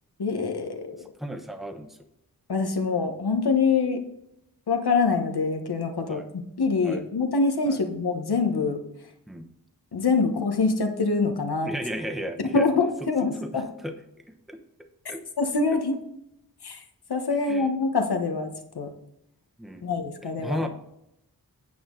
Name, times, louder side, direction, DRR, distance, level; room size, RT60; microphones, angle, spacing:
voice 1, 0.2-1.1 2.5-4.0 4.7-8.8 9.9-11.7 12.4-13.7 15.4-16.0 16.6-16.8 17.1-18.9 19.8-20.6, left 4 dB, 85° left, 4 dB, 1.2 m, -25 dB
voice 2, 1.2-2.0 6.1-6.3 6.8-7.0 7.7-7.8 9.3-9.4 11.7-12.7 13.2-13.9 14.5-14.6 15.1-15.2 15.7-15.8 17.5-17.7 19.6-19.9 20.4-20.7, equal, ahead, 5 dB, 1.0 m, -34 dB
9.2 x 6.3 x 3.8 m, 0.80 s
wide cardioid pair, 70°, 38 cm